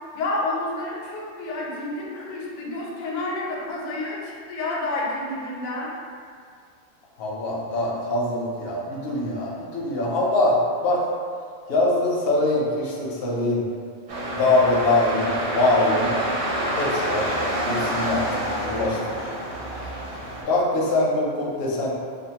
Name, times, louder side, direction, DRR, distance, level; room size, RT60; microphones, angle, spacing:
voice 1, 0.1-5.9, left 2 dB, 80° left, -4 dB, 1.0 m, -29 dB
voice 2, 7.2-10.6 10.8-11.0 11.7-13.6 14.3-16.1 16.7-19.1 20.5-21.9, left 2 dB, 60° left, -4 dB, 0.7 m, -23 dB
sound 1, 14.1-20.4, right 1 dB, 60° right, 0.9 m, -27 dB
2.5 x 2.4 x 2.8 m, 2.2 s
omnidirectional pair, 1.4 m